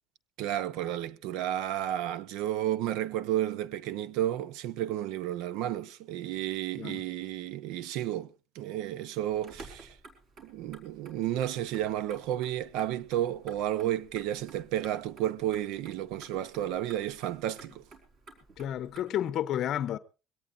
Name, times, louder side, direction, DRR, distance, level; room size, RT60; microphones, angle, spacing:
voice 1, 0.4-8.3 8.5-9.9 10.4-17.8, right 12 dB, 70° right, 0.9 m, -32 dB
Motor vehicle (road), 9.3-19.0, right 3 dB, 40° right, 4.4 m, -53 dB
voice 2, 18.6-20.0, left 11 dB, 40° left, 0.7 m, -31 dB
22.5 x 18.0 x 2.6 m
cardioid pair, 170°, 0 cm